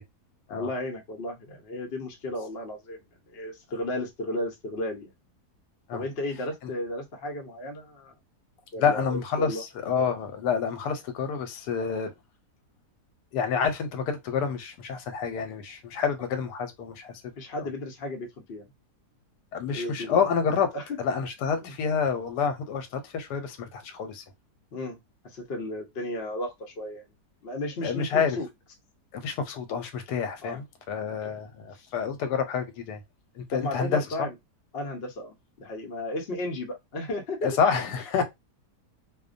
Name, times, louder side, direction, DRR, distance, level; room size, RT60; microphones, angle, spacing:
voice 1, 0.5-3.0 3.3-5.1 5.9-8.1 8.7-9.6 17.4-18.7 19.6-20.2 20.7-21.0 21.6-21.7 24.7-25.0 25.2-27.1 27.4-28.5 30.4-30.7 31.2-31.4 31.7-31.9 33.5-34.3 34.7-37.7, left 1 dB, 55° left, 0.7 m, -34 dB
voice 2, 8.8-9.6 9.8-12.1 13.3-17.2 17.5-17.6 19.5-20.7 21.0-24.2 27.8-28.4 29.1-33.0 33.4-34.3 37.4-38.2, left 6 dB, 85° left, 1.2 m, -28 dB
2.6 x 2.1 x 2.5 m
omnidirectional pair, 1.8 m